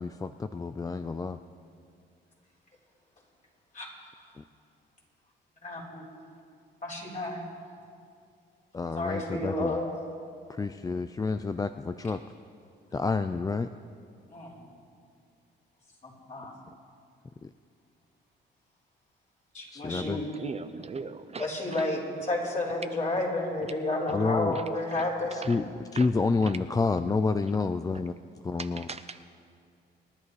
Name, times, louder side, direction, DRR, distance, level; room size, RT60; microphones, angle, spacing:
voice 1, 0.0-1.4 4.4-4.5 8.7-9.8 10.5-12.2 12.9-13.7 17.4-17.5 19.7-20.2 24.1-24.6 25.3-28.1 28.4-28.9, left 4 dB, 20° left, 10 dB, 0.3 m, -29 dB
voice 2, 5.6-6.0 6.8-7.4 9.0-9.9 14.3-14.7 16.0-16.5 19.5-20.3 21.4-25.6, left 2 dB, 40° left, -4 dB, 4.1 m, -31 dB
voice 3, 19.9-21.4 26.0-26.1 28.9-29.2, right 5 dB, 30° right, 9 dB, 0.5 m, -39 dB
27.0 x 11.0 x 3.2 m, 2.4 s
cardioid pair, 90°, 20 cm